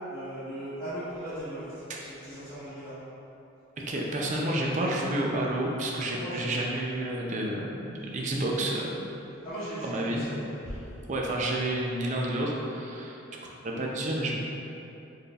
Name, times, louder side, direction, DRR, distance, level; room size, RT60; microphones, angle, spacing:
voice 1, 0.1-2.9 6.0-6.7 9.4-10.4 10.6-10.8, right 1 dB, 20° left, -18 dB, 1.1 m, -38 dB
voice 2, 3.9-8.9 9.8-10.2 11.1-13.2 13.6-14.4, right 1 dB, 35° right, -2 dB, 0.4 m, -30 dB
4.6 x 3.2 x 2.3 m, 2.9 s
head